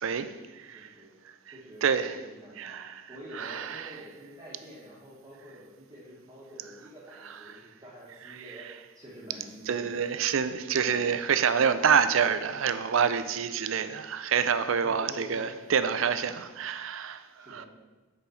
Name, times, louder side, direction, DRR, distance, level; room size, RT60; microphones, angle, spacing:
voice 1, 0.7-1.1 1.5-8.7 8.9-10.1 10.7-11.3 14.8-15.6 17.4-17.7, equal, 15° right, 1.3 m, -47 dB
voice 2, 2.6-2.9 3.4-3.8 9.7-17.2 17.5-17.6, right 7 dB, 70° right, 0.5 m, -27 dB
5.5 x 5.1 x 6.3 m
head